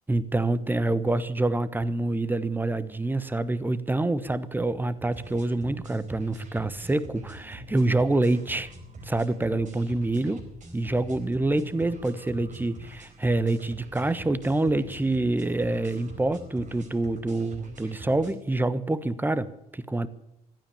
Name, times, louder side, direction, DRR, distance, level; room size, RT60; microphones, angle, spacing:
voice 1, 0.1-8.7 9.0-10.4 10.7-20.1, right 2 dB, 10° right, 16 dB, 1.2 m, -26 dB
sound 1, 5.0-18.3, right 1 dB, 40° right, 4.6 m, -44 dB
15.5 x 12.5 x 7.2 m, 0.87 s
figure-of-eight pair, 55°, 20 cm